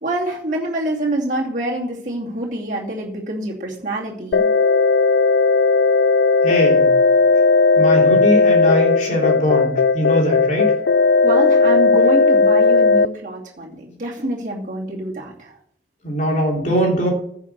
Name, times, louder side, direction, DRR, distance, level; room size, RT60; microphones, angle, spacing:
voice 1, 0.0-4.5 11.2-15.5, right 1 dB, 45° right, -4 dB, 2.7 m, -26 dB
sound 1, 4.3-13.1, left 4 dB, 65° left, 0.4 m, -15 dB
voice 2, 6.4-6.9 7.8-10.7 16.0-17.1, equal, 40° left, -1 dB, 3.3 m, -20 dB
10.0 x 6.0 x 8.1 m, 0.69 s
head